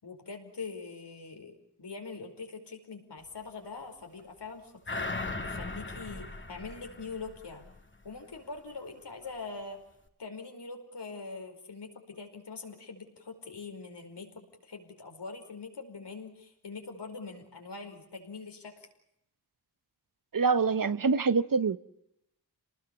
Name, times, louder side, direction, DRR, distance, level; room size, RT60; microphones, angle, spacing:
voice 1, 0.0-7.6 8.0-9.8 10.2-18.9, left 4 dB, 85° left, 5.2 m, -43 dB
sound 1, 4.9-7.8 8.1-8.2, left 3 dB, 30° left, 2.1 m, -38 dB
voice 2, 20.3-21.8, right 4 dB, 55° right, 1.0 m, -25 dB
29.0 x 19.5 x 7.2 m
wide cardioid pair, 90°, 40 cm